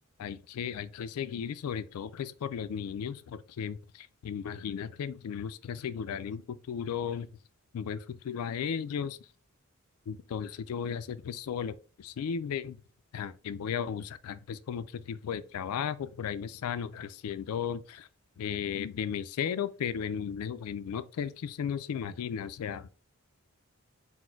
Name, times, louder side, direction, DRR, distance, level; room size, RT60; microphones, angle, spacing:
voice 1, 0.2-7.3 7.7-9.2 10.1-12.8 13.1-18.1 18.4-22.9, left 7 dB, 75° left, 0.3 m, -35 dB
4.2 x 2.1 x 4.4 m
head